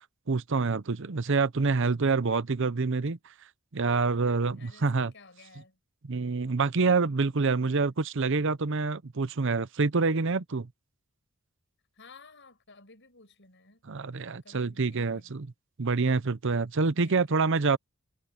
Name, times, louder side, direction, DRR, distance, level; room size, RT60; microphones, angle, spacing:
voice 1, 0.3-3.2 3.7-5.1 6.0-10.7 13.8-15.5 15.8-17.8, right 4 dB, 60° right, 0.7 m, -26 dB
voice 2, 4.1-5.8 7.6-7.9 11.9-13.8 14.4-15.3 16.4-16.5 17.0-17.2, left 3 dB, 55° left, 6.7 m, -55 dB
head